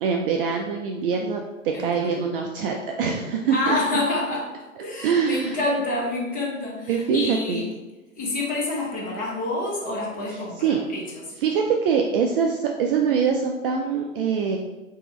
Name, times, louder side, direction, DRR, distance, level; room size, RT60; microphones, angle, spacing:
voice 1, 0.0-1.4 1.8-3.8 5.0-5.6 6.9-7.6 10.3-10.8 11.4-14.6, right 6 dB, 45° right, 2 dB, 0.4 m, -24 dB
voice 2, 1.7-2.3 3.5-7.7 8.2-11.2, left 2 dB, 20° left, -4 dB, 1.3 m, -28 dB
4.6 x 2.7 x 3.1 m, 1.1 s
hypercardioid pair, 110°, 40 cm